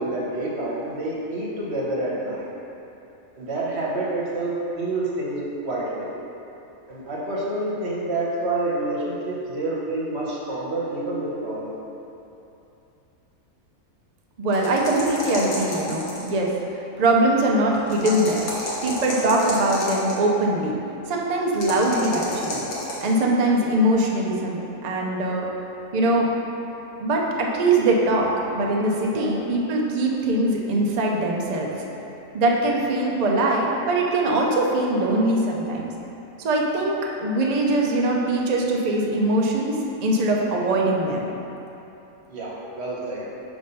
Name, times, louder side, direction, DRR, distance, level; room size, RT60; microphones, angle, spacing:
voice 1, 0.0-2.5 3.4-6.1 6.9-11.8 29.1-29.3 42.3-43.3, right 2 dB, 50° right, -5 dB, 1.2 m, -28 dB
voice 2, 14.4-18.5 18.8-20.8 21.1-22.6 23.0-25.5 25.9-26.3 27.0-31.8 32.3-35.9 36.4-41.2, right 1 dB, 80° right, -1 dB, 0.3 m, -22 dB
sound 1, 14.5-16.4 17.9-20.2 21.6-23.1, left 1 dB, 75° left, 1.5 m, -31 dB
5.4 x 3.4 x 5.4 m, 2.9 s
omnidirectional pair, 1.5 m